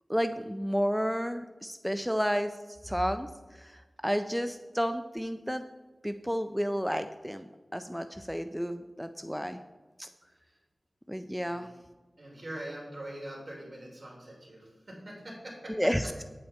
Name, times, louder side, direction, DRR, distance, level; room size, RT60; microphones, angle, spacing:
voice 1, 0.1-2.6 2.8-3.3 3.5-5.7 6.0-7.5 7.7-9.6 10.0-10.1 11.1-11.7 15.7-16.2, equal, ahead, 9 dB, 0.4 m, -31 dB
voice 2, 12.2-15.9, right 1 dB, 50° right, -2 dB, 3.5 m, -43 dB
8.6 x 8.5 x 4.4 m, 1.3 s
wide cardioid pair, 60°, 0 cm